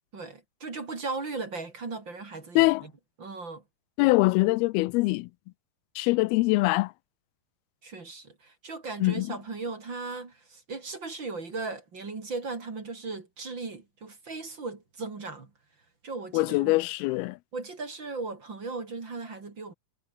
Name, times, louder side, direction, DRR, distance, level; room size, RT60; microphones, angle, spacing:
voice 1, 0.1-2.9 3.2-3.6 7.8-15.5 16.0-16.8 17.5-19.7, right 3 dB, 30° right, 3.3 m, -37 dB
voice 2, 2.6-2.9 4.0-5.3 6.0-6.9 9.0-9.4 16.3-17.4, left 22 dB, 90° left, 2.5 m, -23 dB
omnidirectional pair, 4.4 m